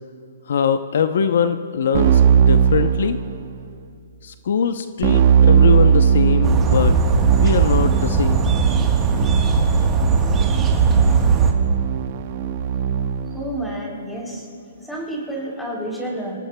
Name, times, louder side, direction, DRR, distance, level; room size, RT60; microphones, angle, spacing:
voice 1, 0.5-3.2 4.2-7.0 7.4-8.5, left 7 dB, 65° left, 10 dB, 0.7 m, -22 dB
Keyboard (musical), 1.9-3.6 5.0-13.4, right 7 dB, 45° right, 0.8 m, -18 dB
sound 1, 6.4-11.5, right 4 dB, 15° right, 1.2 m, -19 dB
voice 2, 13.3-14.5 14.8-16.4, right 1 dB, 5° left, -3 dB, 3.3 m, -29 dB
28.0 x 17.5 x 2.2 m, 2.5 s
hypercardioid pair, 150°, 0 cm